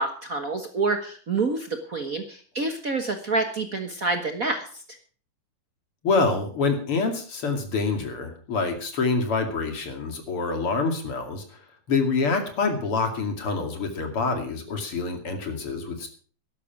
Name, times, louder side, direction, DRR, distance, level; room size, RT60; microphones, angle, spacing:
voice 1, 0.0-4.8, right 3 dB, 55° right, 6 dB, 0.9 m, -27 dB
voice 2, 6.0-11.6 11.9-16.1, left 4 dB, 45° left, 5 dB, 3.2 m, -26 dB
12.5 x 11.5 x 5.9 m, 0.42 s
omnidirectional pair, 3.5 m